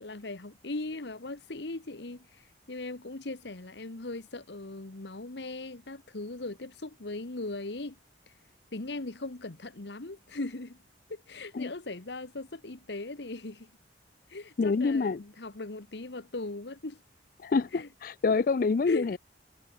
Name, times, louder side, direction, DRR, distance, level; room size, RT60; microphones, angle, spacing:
voice 1, 0.0-8.0 8.7-10.8 11.1-13.7 14.3-17.0 17.7-17.9 18.9-19.2, left 2 dB, 70° left, 1.3 m, -39 dB
voice 2, 14.6-15.2 17.4-19.2, left 4 dB, 50° left, 0.4 m, -26 dB
head